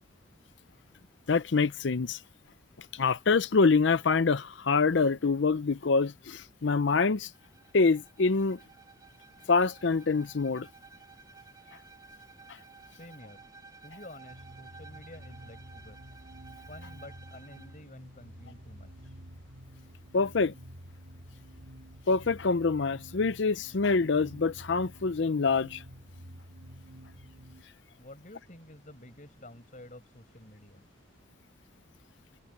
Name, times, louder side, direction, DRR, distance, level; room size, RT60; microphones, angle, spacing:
voice 1, 1.3-2.2 2.9-7.3 7.7-8.6 9.5-10.7 20.1-20.5 22.1-25.8, left 4 dB, 65° left, 0.6 m, -25 dB
Bowed string instrument, 7.3-17.8, right 4 dB, 20° right, 3.4 m, -54 dB
voice 2, 12.8-13.5 13.8-16.0 16.7-19.2 28.0-30.9, left 1 dB, 40° left, 5.7 m, -50 dB
sound 1, 14.3-27.6, equal, 90° right, 6.1 m, -50 dB
head